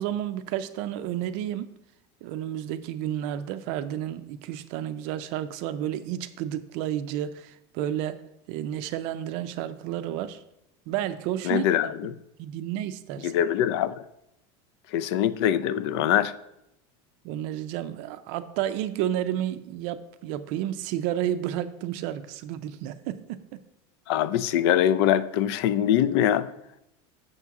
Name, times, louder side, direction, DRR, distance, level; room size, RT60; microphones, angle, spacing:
voice 1, 0.0-1.7 2.2-8.2 8.5-10.4 10.9-11.9 12.4-13.3 17.2-23.6, right 11 dB, 50° right, 12 dB, 0.4 m, -31 dB
voice 2, 11.4-12.1 13.2-13.9 14.9-16.3 24.1-26.5, left 10 dB, 65° left, 14 dB, 0.4 m, -23 dB
7.2 x 6.7 x 3.6 m, 0.84 s
cardioid pair, 170°, 14 cm